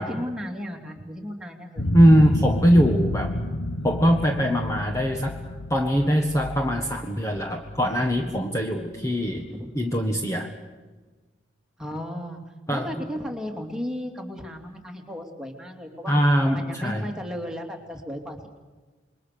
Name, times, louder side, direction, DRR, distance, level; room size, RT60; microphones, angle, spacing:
voice 1, 0.0-1.9 9.4-9.7 11.8-12.4 12.7-16.2 16.5-18.5, equal, 5° right, 1 dB, 2.9 m, -35 dB
sound 1, 1.8-8.9, left 1 dB, 80° left, 1.5 m, -31 dB
voice 2, 1.9-3.4 3.8-5.4 5.7-9.4 9.7-10.5 12.7-12.9 16.1-17.0, equal, 15° left, 3 dB, 1.5 m, -21 dB
27.5 x 22.5 x 6.9 m, 1.3 s
head